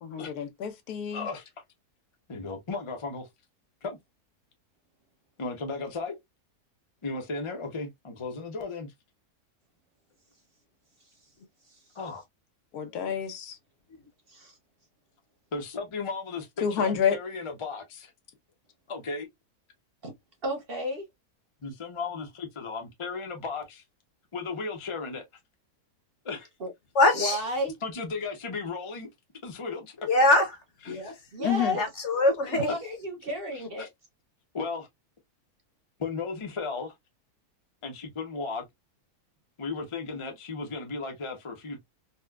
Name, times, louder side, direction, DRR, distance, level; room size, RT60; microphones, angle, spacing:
voice 1, 0.0-1.3 12.7-13.6 16.6-17.2 31.4-31.8, left 8 dB, 80° left, 1.2 m, -28 dB
voice 2, 1.1-1.5 2.3-3.3 3.8-4.0 5.4-6.2 7.0-8.9 11.9-12.2 15.5-18.1 18.9-19.3 21.6-23.8 24.3-25.3 26.2-26.5 27.8-29.1 29.4-30.1 30.8-31.1 33.5-33.9 34.5-34.9 36.0-36.9 37.8-38.6 39.6-41.8, left 4 dB, 30° left, 0.6 m, -35 dB
voice 3, 20.4-21.0 26.6-26.7 27.1-27.7 30.9-31.0 31.3-31.8 32.5-33.9, equal, 45° right, 1.0 m, -32 dB
voice 4, 26.9-27.4 30.1-30.5 30.9-32.7, left 2 dB, 55° left, 1.1 m, -24 dB
4.1 x 2.2 x 2.2 m
omnidirectional pair, 1.6 m